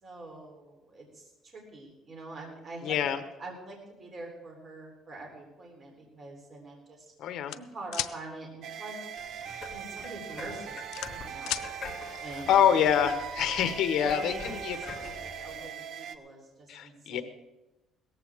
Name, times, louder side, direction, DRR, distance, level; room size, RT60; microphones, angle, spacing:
voice 1, 0.0-3.0 3.4-7.1 7.5-9.1 9.7-11.5 12.2-12.7 14.0-17.2, right 2 dB, 35° right, 0 dB, 3.6 m, -44 dB
voice 2, 2.8-3.2 7.2-7.5 12.1-12.2 12.5-14.3 14.6-14.8 16.7-17.2, left 9 dB, 60° left, 9 dB, 1.2 m, -25 dB
sound 1, 7.5-8.1 9.8-10.0 10.4-11.7, left 14 dB, 80° left, 0.5 m, -34 dB
sound 2, 8.6-16.2, right 8 dB, 60° right, 0.7 m, -40 dB
sound 3, 9.2-15.7, left 4 dB, 25° left, 2.3 m, -45 dB
17.0 x 14.5 x 3.7 m, 0.98 s
cardioid pair, 155°, 0 cm